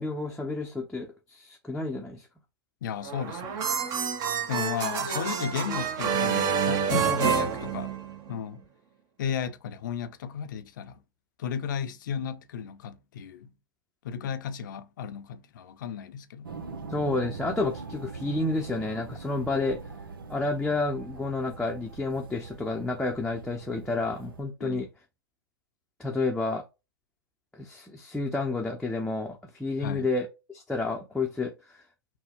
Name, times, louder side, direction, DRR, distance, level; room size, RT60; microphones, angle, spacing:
voice 1, 0.0-2.3 16.9-19.8 20.3-24.9 26.0-26.6 27.5-31.5, left 3 dB, 5° left, 0.7 m, -30 dB
voice 2, 2.8-3.7 4.5-8.0 8.3-8.7 9.2-11.0 11.4-13.5 14.0-16.5 24.6-24.8 29.8-30.1, left 7 dB, 60° left, 0.7 m, -34 dB
sound 1, 3.0-8.4, right 7 dB, 30° right, 0.9 m, -28 dB
sound 2, 16.4-24.4, right 4 dB, 80° right, 0.8 m, -42 dB
6.1 x 2.3 x 3.5 m
hypercardioid pair, 115°, 12 cm